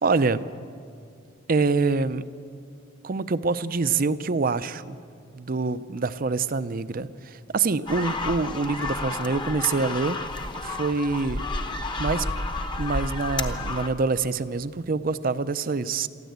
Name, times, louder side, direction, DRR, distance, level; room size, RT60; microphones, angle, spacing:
voice 1, 0.0-0.5 1.5-2.2 3.0-5.0 5.3-10.2 10.5-11.4 12.0-12.3 12.8-16.1, right 4 dB, 45° right, 14 dB, 0.6 m, -25 dB
sound 1, 7.8-13.9, left 2 dB, 25° left, 1.0 m, -31 dB
23.0 x 14.5 x 8.1 m, 2.4 s
head